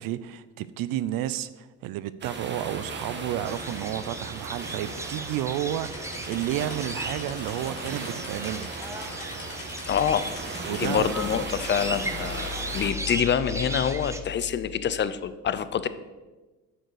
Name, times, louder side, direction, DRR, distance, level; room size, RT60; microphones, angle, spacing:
voice 1, 0.0-8.7 10.6-11.1, right 12 dB, 70° right, 0.5 m, -31 dB
sound 1, 2.2-12.9, right 3 dB, 30° right, 1.4 m, -37 dB
sound 2, 3.4-14.2, right 2 dB, 10° right, 0.8 m, -37 dB
sound 3, 5.8-11.0, left 6 dB, 80° left, 2.1 m, -45 dB
voice 2, 9.8-10.3 10.8-15.9, left 8 dB, 30° left, 0.6 m, -26 dB
9.0 x 6.5 x 4.8 m
supercardioid pair, 90°, 35 cm